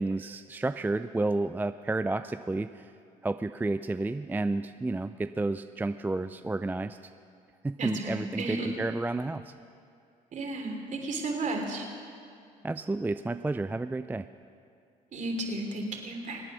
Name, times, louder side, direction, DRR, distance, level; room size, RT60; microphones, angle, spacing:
voice 1, 0.0-2.9 3.2-7.0 7.6-9.5 12.6-14.3, right 2 dB, 10° right, 11 dB, 0.4 m, -31 dB
voice 2, 7.8-8.7 10.3-11.8 15.1-16.4, right 2 dB, 50° right, 2 dB, 3.2 m, -33 dB
25.0 x 8.9 x 6.2 m, 2.5 s
supercardioid pair, 80°, 17 cm